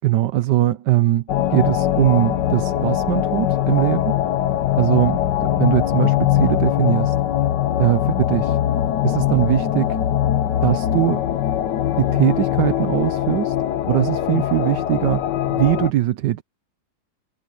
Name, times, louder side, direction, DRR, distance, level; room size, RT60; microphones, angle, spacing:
voice 1, 0.0-4.1 4.8-7.2 7.8-8.6 9.0-10.0 10.6-11.2 12.0-13.6 13.8-16.4, right 14 dB, 85° right, 1.4 m, -21 dB
sound 1, 1.3-15.9, left 11 dB, 85° left, 1.6 m, -21 dB
omnidirectional pair, 1.8 m